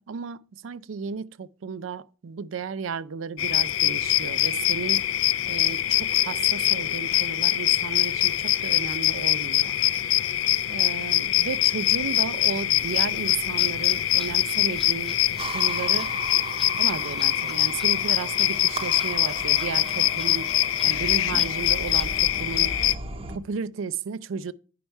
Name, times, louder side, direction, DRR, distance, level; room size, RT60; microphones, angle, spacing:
voice 1, 0.1-5.1 5.5-9.8 10.7-15.2 15.5-16.1 16.8-22.8 23.3-24.5, right 5 dB, 80° right, 0.4 m, -34 dB
sound 1, 3.4-22.9, left 13 dB, 70° left, 0.4 m, -24 dB
sound 2, 12.8-22.3, left 1 dB, ahead, 0.4 m, -46 dB
sound 3, 15.4-23.4, right 3 dB, 30° right, 0.7 m, -37 dB
9.3 x 5.4 x 4.5 m
head